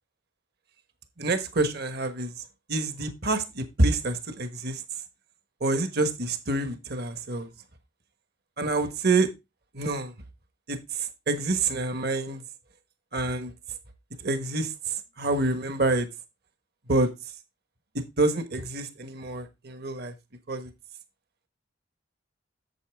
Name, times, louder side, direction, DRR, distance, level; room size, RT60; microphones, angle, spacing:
voice 1, 1.2-2.3 2.7-4.8 5.6-7.5 8.6-9.3 9.7-10.1 10.7-12.4 13.1-13.5 14.2-16.1 16.9-17.1 17.9-20.1 20.5-20.7, right 2 dB, 55° right, 1.2 m, -27 dB
8.4 x 7.2 x 3.4 m
head